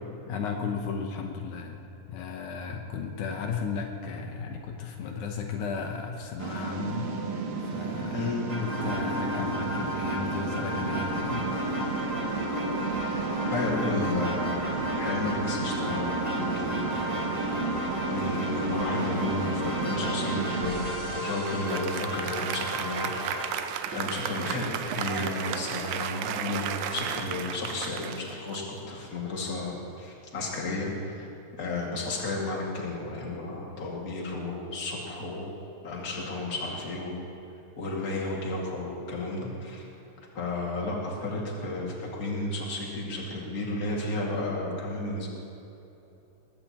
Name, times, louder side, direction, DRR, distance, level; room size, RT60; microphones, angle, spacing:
voice 1, 0.3-7.1 7.6-8.3 8.6-11.9, left 5 dB, 75° left, 3 dB, 2.4 m, -35 dB
sound 1, 6.4-22.1, right 3 dB, 60° right, 2.4 m, -31 dB
voice 2, 8.1-8.5 13.5-17.2 17.5-17.7 18.1-23.4 23.9-31.3 31.6-35.5 35.8-37.2 37.8-39.9 40.3-45.3, left 2 dB, 30° left, -2 dB, 2.3 m, -33 dB
sound 2, 8.5-23.5, equal, 30° right, 0.7 m, -36 dB
Applause, 21.4-29.1, right 9 dB, 80° right, 2.0 m, -34 dB
20.5 x 16.0 x 3.0 m, 3.0 s
omnidirectional pair, 3.5 m